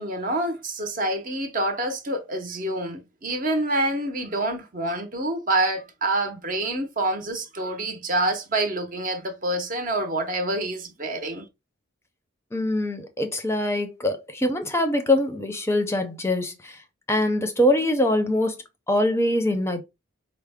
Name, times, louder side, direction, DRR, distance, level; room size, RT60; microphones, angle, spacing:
voice 1, 0.0-11.5, right 1 dB, 40° right, 0.7 m, -27 dB
voice 2, 12.5-16.8 17.1-18.6 18.9-19.8, left 1 dB, 15° left, 0.6 m, -23 dB
4.7 x 2.0 x 3.4 m
head